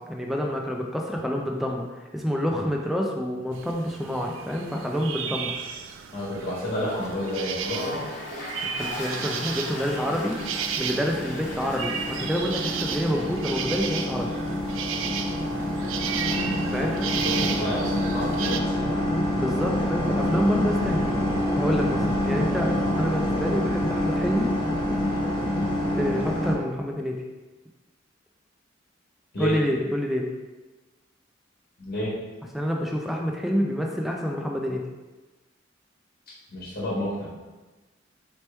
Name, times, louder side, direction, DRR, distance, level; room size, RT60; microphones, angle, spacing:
voice 1, 0.0-1.8 2.1-5.5 8.6-10.4 10.8-14.3 16.7-17.0 19.3-21.1 21.5-24.5 25.9-27.2 29.4-30.3 32.5-34.8, equal, ahead, 0 dB, 0.3 m, -27 dB
sound 1, 3.5-18.6, right 7 dB, 85° right, 0.3 m, -34 dB
voice 2, 6.1-8.0 16.2-16.9 17.2-18.7 29.3-29.6 31.8-32.1 36.5-37.3, left 1 dB, 50° left, -7 dB, 1.3 m, -30 dB
Toilet flush, 6.7-13.5, left 1 dB, 75° left, 1.1 m, -38 dB
sound 2, 9.1-26.5, left 1 dB, 30° left, 0.6 m, -27 dB
4.2 x 3.0 x 3.3 m, 1.2 s
head